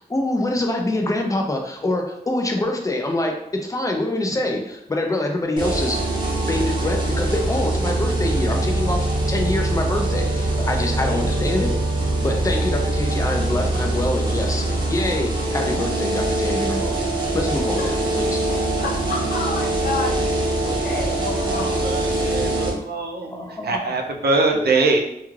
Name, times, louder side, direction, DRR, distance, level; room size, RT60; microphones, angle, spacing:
voice 1, 0.0-6.0 6.4-11.7 12.2-17.0 17.3-18.4 23.3-23.8 24.5-24.7, left 1 dB, 20° left, 2 dB, 0.4 m, -25 dB
sound 1, 5.6-22.7, right 2 dB, 30° right, 0.7 m, -23 dB
voice 2, 18.5-22.3, left 3 dB, 70° left, -2 dB, 0.7 m, -31 dB
voice 3, 21.5-25.0, right 3 dB, 85° right, 3 dB, 0.4 m, -23 dB
2.3 x 2.3 x 3.1 m, 0.80 s
wide cardioid pair, 130°, 16 cm